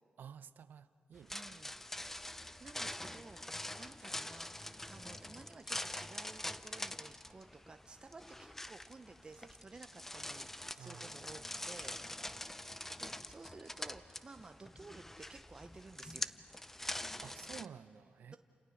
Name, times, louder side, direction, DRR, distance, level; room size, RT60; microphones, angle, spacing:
voice 1, 0.2-1.6 10.8-11.3 17.2-18.4, right 7 dB, 70° right, 0.8 m, -52 dB
sound 1, 1.2-17.7, left 1 dB, 10° left, 0.6 m, -45 dB
voice 2, 1.3-12.5 13.0-16.4, right 3 dB, 30° right, 0.7 m, -55 dB
30.0 x 28.0 x 6.4 m
cardioid pair, 95°, 3 cm